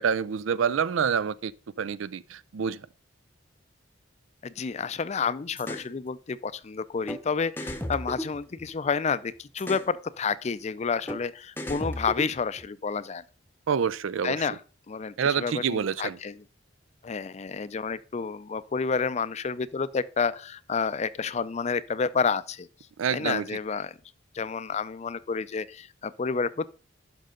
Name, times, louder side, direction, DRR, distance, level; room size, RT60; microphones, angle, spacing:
voice 1, 0.0-1.5 1.8-2.8 13.7-14.4 15.2-16.2 23.0-23.5, right 7 dB, 85° right, 0.4 m, -27 dB
voice 2, 4.4-13.2 14.2-14.6 14.9-16.4 17.0-22.7 23.1-23.9 24.3-26.7, left 5 dB, 35° left, 0.4 m, -30 dB
sound 1, 5.6-5.9 7.1-7.2 7.6-9.0 9.6-9.9 11.1-11.2 11.6-12.7, equal, 10° left, 0.8 m, -35 dB
11.5 x 5.3 x 3.8 m
head